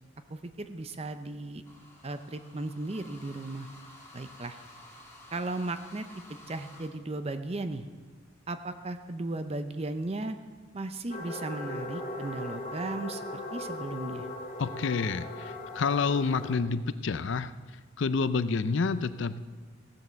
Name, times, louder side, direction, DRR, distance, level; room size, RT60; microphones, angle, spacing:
voice 1, 0.3-1.6 2.0-3.7 4.1-4.6 5.3-6.0 6.5-7.9 8.5-10.4 10.7-14.3, right 2 dB, 30° right, 9 dB, 0.5 m, -36 dB
sound 1, 1.6-6.9, left 1 dB, 10° left, 1.9 m, -52 dB
sound 2, 11.1-16.5, left 2 dB, 40° left, 2.1 m, -39 dB
voice 2, 14.6-19.4, left 4 dB, 65° left, 14 dB, 0.5 m, -29 dB
16.0 x 7.6 x 6.9 m, 1.5 s
head